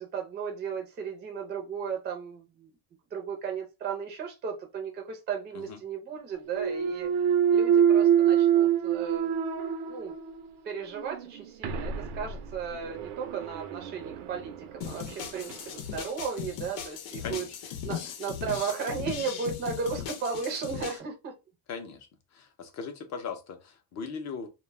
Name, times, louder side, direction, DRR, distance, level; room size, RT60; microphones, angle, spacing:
voice 1, 0.0-2.7 3.1-9.4 9.9-10.2 10.6-17.4 17.8-21.3, right 6 dB, 20° right, 0.4 m, -35 dB
Thump thud, 6.5-10.5 11.0-15.6, right 9 dB, 85° right, 0.6 m, -26 dB
sound 1, 14.8-21.0, left 9 dB, 80° left, 0.8 m, -38 dB
voice 2, 17.2-17.6 21.7-22.1 22.3-24.5, left 5 dB, 35° left, 0.5 m, -39 dB
2.3 x 2.0 x 3.1 m
cardioid pair, 160°, 49 cm